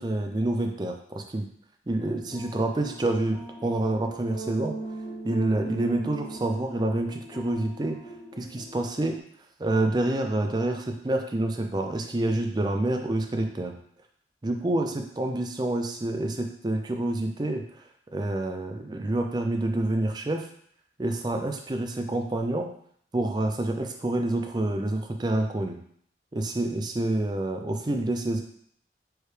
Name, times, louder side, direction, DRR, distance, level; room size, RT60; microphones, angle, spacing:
voice 1, 0.0-1.5 1.9-4.8 5.2-8.0 8.4-9.2 9.6-13.8 14.4-17.6 18.1-20.5 21.0-22.7 23.1-25.8 26.3-28.4, right 1 dB, 25° right, 4 dB, 0.4 m, -27 dB
sound 1, 2.0-9.2, right 2 dB, 25° left, 0.6 m, -39 dB
4.6 x 3.2 x 3.2 m, 0.63 s
head